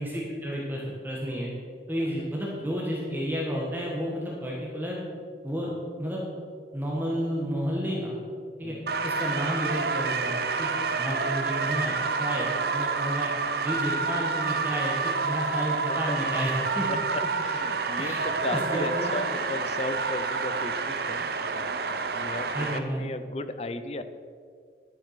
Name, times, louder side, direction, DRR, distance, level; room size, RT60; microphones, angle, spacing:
voice 1, 0.0-1.5 1.9-5.0 5.4-5.7 6.0-6.2 6.7-8.2 8.6-8.7 9.0-10.7 11.0-13.3 13.6-16.9 18.0-18.2 18.5-19.1 22.5-23.0, equal, 10° right, -4 dB, 1.4 m, -31 dB
voice 2, 8.6-9.0 10.9-11.3 15.9-16.4 16.9-24.0, left 2 dB, 35° left, 11 dB, 0.5 m, -36 dB
sound 1, 8.9-22.8, right 4 dB, 55° right, 0.7 m, -28 dB
11.5 x 6.8 x 5.8 m, 2.1 s
head